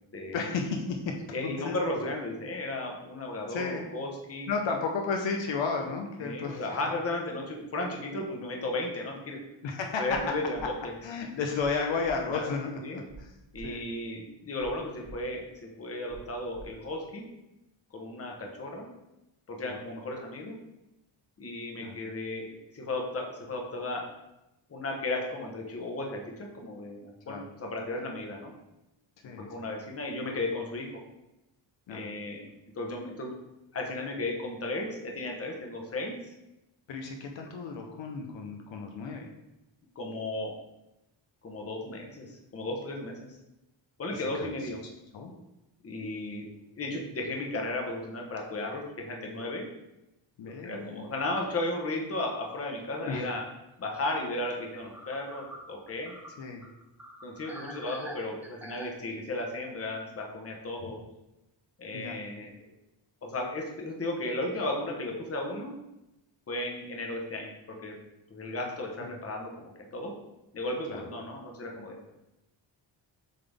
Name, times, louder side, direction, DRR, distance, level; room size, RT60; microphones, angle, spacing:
voice 1, 0.3-1.1 1.4-1.8 3.5-3.8 4.5-6.7 9.6-10.1 11.0-13.3 13.6-13.8 19.6-19.8 21.8-22.0 27.3-27.4 29.2-29.5 31.9-32.1 36.9-39.3 44.1-44.5 45.1-45.3 50.4-51.0 53.0-53.3 56.4-56.6 61.9-62.2 69.0-69.2 70.9-71.0, left 4 dB, 70° left, 2 dB, 0.9 m, -33 dB
voice 2, 1.3-4.5 6.2-9.4 10.0-10.9 12.3-12.5 12.8-13.0 13.5-17.3 17.9-18.9 19.5-20.5 21.4-22.5 22.7-24.1 24.7-28.5 29.5-31.0 31.9-33.3 33.7-36.1 39.9-40.5 41.4-43.3 44.0-44.8 45.8-46.5 46.8-49.7 50.4-53.4 53.8-56.1 57.2-61.0 61.8-62.5 63.2-65.7 66.5-67.5 67.8-68.0 68.3-70.1 70.5-72.0, left 2 dB, 30° left, 1 dB, 1.1 m, -35 dB
sound 1, 10.1-10.2 10.5-10.7 11.6-11.7 12.0-12.1 13.1-13.2 13.5-13.7 14.6-14.7 15.0-15.1 16.1-16.2 16.5-16.6, right 4 dB, 70° right, 2.2 m, -47 dB
sound 2, 50.8-51.0 51.4-51.5 53.9-54.0 54.3-54.4 54.6-58.9, equal, 5° right, 0.8 m, -46 dB
7.7 x 3.9 x 3.5 m, 0.93 s
wide cardioid pair, 150°, 47 cm